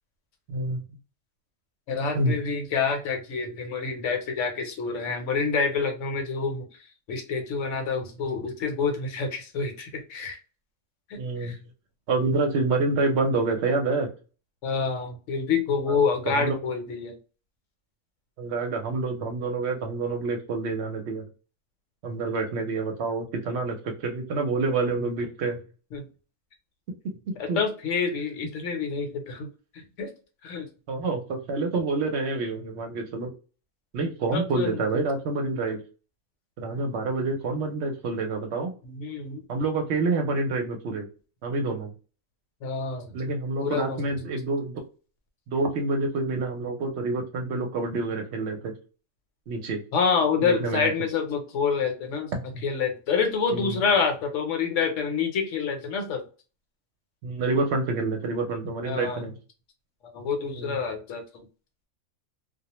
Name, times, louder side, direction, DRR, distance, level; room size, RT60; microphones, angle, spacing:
voice 1, 0.5-0.8 2.1-2.4 11.2-11.6 12.1-14.1 16.3-16.5 18.4-21.3 22.0-25.6 27.5-27.6 30.9-33.3 33.9-35.8 36.6-38.7 39.5-41.1 41.4-41.9 43.1-44.8 45.5-48.7 49.5-49.8 50.4-50.9 52.3-52.7 53.5-53.8 57.2-59.3 60.6-60.8, right 3 dB, 65° right, 4 dB, 0.8 m, -27 dB
voice 2, 1.9-10.4 11.1-11.6 14.6-17.2 25.9-26.1 27.4-30.1 30.4-30.7 34.3-35.1 38.8-39.4 42.6-43.2 43.6-44.1 49.9-56.3 58.8-59.2 60.1-61.2, left 5 dB, 70° left, 5 dB, 1.0 m, -27 dB
2.3 x 2.0 x 2.9 m, 0.36 s
omnidirectional pair, 1.3 m